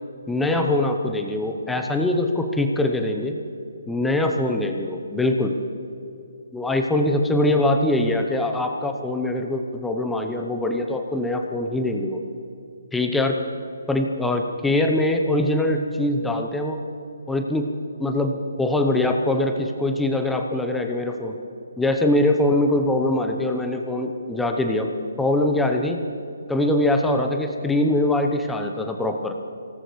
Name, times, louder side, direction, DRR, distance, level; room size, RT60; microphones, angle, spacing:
voice 1, 0.3-3.4 3.9-5.5 6.5-12.2 12.9-13.4 13.9-16.8 17.3-17.7 18.0-21.3 21.8-24.9 25.2-26.0 26.5-29.4, left 1 dB, 5° left, 3 dB, 0.8 m, -23 dB
24.5 x 18.5 x 3.2 m, 2.5 s
hypercardioid pair, 155°, 0 cm